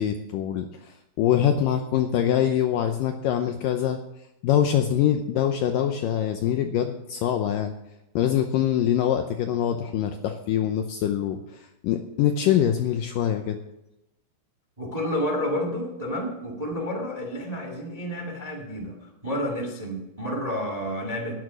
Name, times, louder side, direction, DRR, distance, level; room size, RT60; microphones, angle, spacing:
voice 1, 0.0-4.0 4.4-7.7 8.2-13.6, left 10 dB, 90° left, 6 dB, 1.9 m, -24 dB
voice 2, 14.8-21.3, equal, 85° right, 2 dB, 0.3 m, -30 dB
11.0 x 10.5 x 6.2 m, 0.89 s
omnidirectional pair, 4.8 m